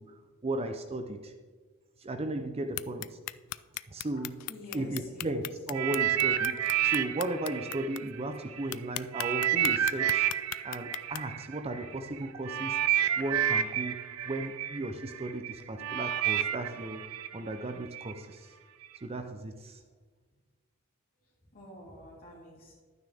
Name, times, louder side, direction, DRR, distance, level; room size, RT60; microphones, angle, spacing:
voice 1, 0.0-1.3 2.0-3.2 3.9-10.3 10.6-12.8 13.2-17.0 17.3-18.5 19.0-19.8, right 2 dB, 30° right, 7 dB, 0.6 m, -36 dB
sound 1, 2.7-8.0 8.4-8.5 8.7-11.2, left 16 dB, 80° left, 0.3 m, -36 dB
voice 2, 4.5-5.4 21.5-22.7, left 1 dB, 45° left, -5 dB, 3.6 m, -48 dB
sound 2, 5.7-8.7 9.1-18.1 18.8-19.0, right 10 dB, 75° right, 0.6 m, -30 dB
11.5 x 9.4 x 3.5 m, 1.4 s
head